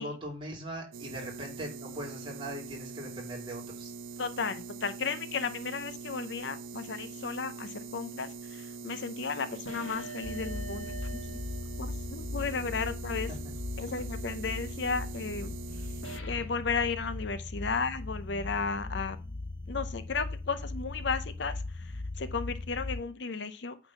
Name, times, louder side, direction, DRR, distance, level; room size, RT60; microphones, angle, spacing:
voice 1, 0.0-3.9 13.3-13.4, right 1 dB, 25° right, 2.5 m, -40 dB
sound 1, 0.9-16.2, right 4 dB, 80° right, 0.5 m, -43 dB
voice 2, 4.2-11.4 11.8-13.3 13.8-15.5 15.8-15.9 16.2-19.2 19.7-23.8, left 5 dB, 60° left, 0.7 m, -34 dB
sound 2, 9.6-12.2 13.9-14.1 16.0-16.6, right 2 dB, 85° left, 1.5 m, -45 dB
sound 3, 10.2-23.0, left 2 dB, 20° left, 0.5 m, -38 dB
8.7 x 4.0 x 5.9 m
head